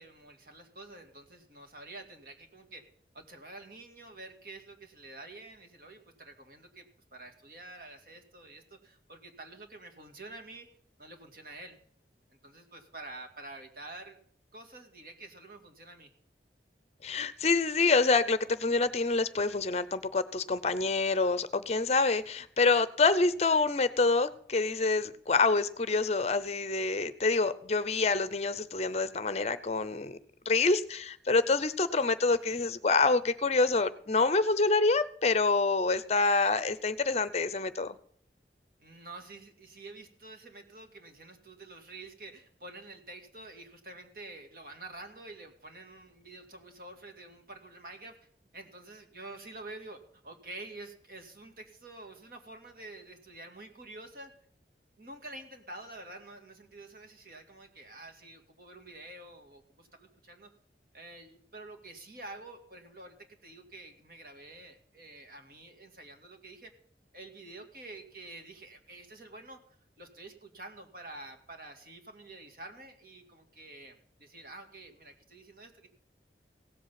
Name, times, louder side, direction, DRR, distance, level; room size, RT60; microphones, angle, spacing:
voice 1, 0.0-2.8 3.1-10.7 11.0-11.8 12.3-14.2 14.5-16.1 38.8-48.3 48.5-54.3 55.0-60.5 60.9-63.2 63.4-66.7 67.1-69.6 70.0-75.9, right 2 dB, 55° right, 4 dB, 2.2 m, -48 dB
voice 2, 17.0-30.2 30.5-38.0, left 3 dB, 35° left, 15 dB, 0.6 m, -27 dB
17.0 x 7.8 x 5.8 m, 0.63 s
head